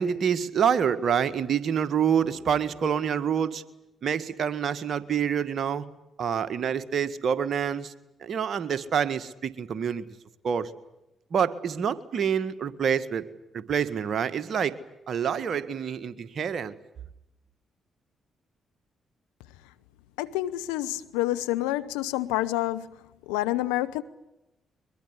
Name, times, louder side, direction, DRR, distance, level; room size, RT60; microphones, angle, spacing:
voice 1, 0.0-3.6 4.0-5.9 6.2-7.9 8.2-10.1 10.4-10.7 11.3-13.2 13.5-14.8 15.1-16.7, right 7 dB, 60° right, 1.7 m, -27 dB
voice 2, 20.2-22.9 23.3-24.0, left 15 dB, 85° left, 1.0 m, -28 dB
23.0 x 22.5 x 9.9 m
hypercardioid pair, 45°, 0 cm